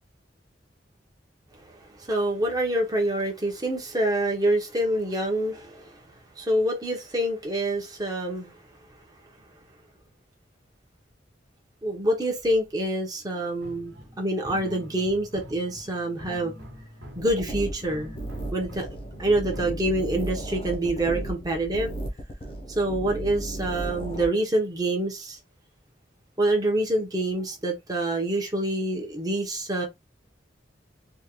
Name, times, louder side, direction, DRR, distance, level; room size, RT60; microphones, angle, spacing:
voice 1, 2.0-6.0 6.4-8.5 11.8-16.6 17.2-18.2 18.5-18.9 19.2-21.9 22.7-25.4 26.4-29.9, right 1 dB, 20° right, 0.8 m, -26 dB
sound 1, 13.6-19.7, equal, 90° right, 1.2 m, -44 dB
sound 2, 17.2-24.3, right 1 dB, 30° left, 0.5 m, -35 dB
3.5 x 2.2 x 2.9 m
head